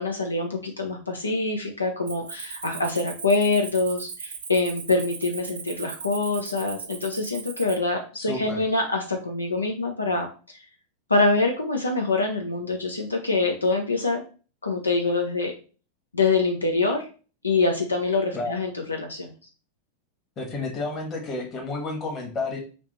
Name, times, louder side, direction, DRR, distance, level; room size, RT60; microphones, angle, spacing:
voice 1, 0.0-10.7 11.1-14.2 14.6-15.5 16.1-17.1 17.4-19.3, left 3 dB, 80° left, 3 dB, 0.6 m, -25 dB
Cricket, 2.1-7.8, right 6 dB, 65° right, 0.6 m, -38 dB
voice 2, 8.1-8.6 18.3-18.5 20.4-22.6, left 3 dB, 30° left, 2 dB, 1.4 m, -31 dB
3.3 x 3.0 x 4.0 m, 0.37 s
figure-of-eight pair, 90°, 0 cm